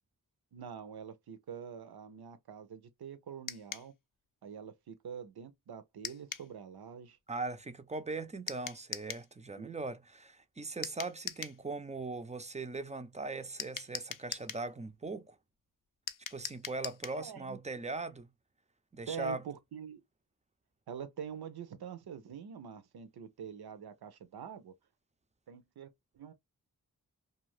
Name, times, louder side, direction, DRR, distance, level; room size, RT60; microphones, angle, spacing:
voice 1, 0.5-3.9 4.4-7.2 9.5-9.7 17.1-17.6 19.1-20.0 20.9-24.7 25.5-25.9 26.1-26.3, right 7 dB, 85° right, 0.6 m, -45 dB
sound 1, 3.5-3.9 6.0-6.5 8.5-9.3 10.8-11.6 13.6-14.7 16.1-17.2, left 9 dB, 60° left, 0.4 m, -41 dB
voice 2, 7.3-15.4 16.3-18.3 18.9-19.4, right 3 dB, 20° right, 0.3 m, -40 dB
2.4 x 2.4 x 3.0 m
wide cardioid pair, 65°, 37 cm